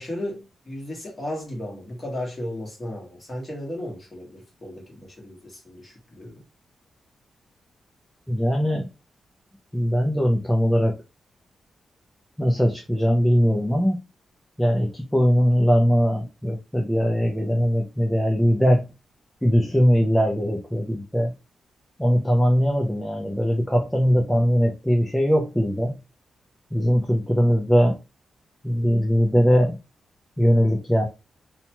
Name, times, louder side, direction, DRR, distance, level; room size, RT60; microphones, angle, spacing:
voice 1, 0.0-6.3, left 1 dB, 20° left, -2 dB, 1.2 m, -35 dB
voice 2, 8.3-8.9 9.7-10.9 12.4-14.0 14.6-18.9 19.4-21.3 22.0-26.0 26.7-28.0 28.6-29.8 30.4-31.0, equal, 5° left, 1 dB, 0.4 m, -20 dB
2.8 x 2.2 x 2.9 m, 0.27 s
wide cardioid pair, 145°, 0 cm